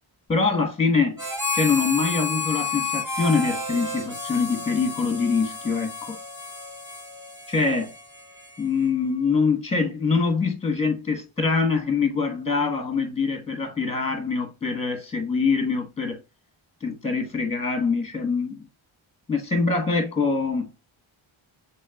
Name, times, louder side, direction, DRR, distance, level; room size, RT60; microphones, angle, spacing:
voice 1, 0.3-1.2 1.5-6.2 7.5-7.9 8.6-16.2 16.8-18.6 19.3-20.7, left 4 dB, 10° left, 1.3 m, -24 dB
Harmonica, 1.2-8.9, left 3 dB, 5° right, 3.0 m, -31 dB
6.3 x 3.6 x 2.4 m
wide cardioid pair, 80°, 49 cm